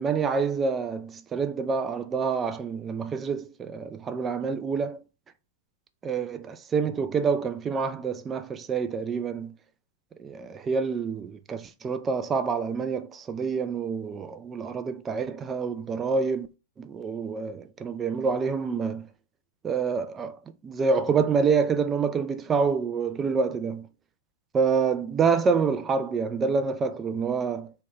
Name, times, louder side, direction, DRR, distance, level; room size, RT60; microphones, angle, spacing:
voice 1, 0.0-5.0 6.0-9.6 10.2-16.5 16.8-19.1 19.6-20.4 20.6-23.9 24.5-27.7, right 5 dB, 20° right, 0.3 m, -27 dB
2.8 x 2.2 x 2.9 m
figure-of-eight pair, 105°, 0 cm